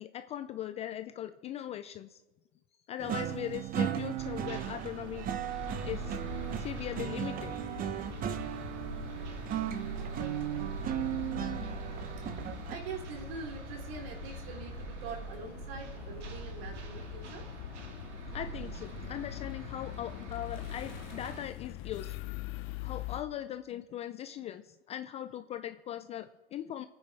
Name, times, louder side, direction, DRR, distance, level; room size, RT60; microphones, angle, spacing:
voice 1, 0.0-2.2 2.9-5.3 5.8-6.2 6.6-7.6 18.3-22.2 22.8-26.9, left 11 dB, 20° left, 11 dB, 0.4 m, -40 dB
sound 1, 3.0-12.8, right 10 dB, 25° right, 1.0 m, -36 dB
sound 2, 4.2-21.5, right 5 dB, 75° right, 2.6 m, -43 dB
sound 3, 5.6-23.2, left 16 dB, 35° left, 0.8 m, -44 dB
voice 2, 12.1-17.5, right 5 dB, 55° right, 2 dB, 3.4 m, -44 dB
23.5 x 9.6 x 4.8 m, 1.2 s
hypercardioid pair, 120°, 35 cm